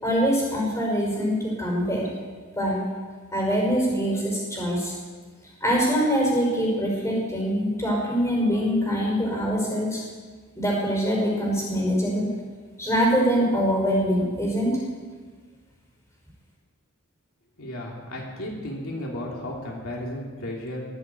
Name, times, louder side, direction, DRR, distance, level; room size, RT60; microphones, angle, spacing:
voice 1, 0.0-2.1 2.6-2.8 3.3-4.9 5.6-10.0 10.6-12.3 12.8-14.8, equal, 15° left, -2 dB, 5.4 m, -24 dB
voice 2, 17.6-20.8, left 1 dB, 75° left, -2 dB, 3.1 m, -34 dB
21.0 x 8.0 x 8.3 m, 1.5 s
head